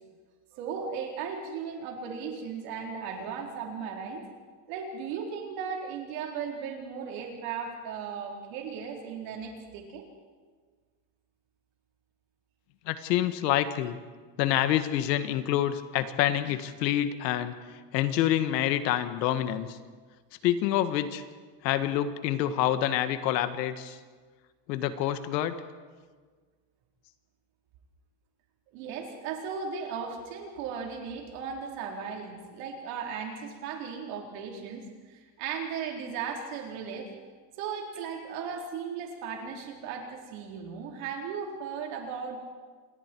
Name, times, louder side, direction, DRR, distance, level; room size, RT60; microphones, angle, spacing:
voice 1, 0.5-4.3 4.7-10.1 28.7-37.1 37.6-42.4, right 6 dB, 45° right, 1 dB, 4.1 m, -36 dB
voice 2, 12.9-14.0 14.4-17.5 17.9-19.8 20.4-21.2 21.6-24.0 24.7-25.6, left 12 dB, 75° left, 10 dB, 1.7 m, -27 dB
28.0 x 22.5 x 4.6 m, 1.5 s
supercardioid pair, 180°, 50 cm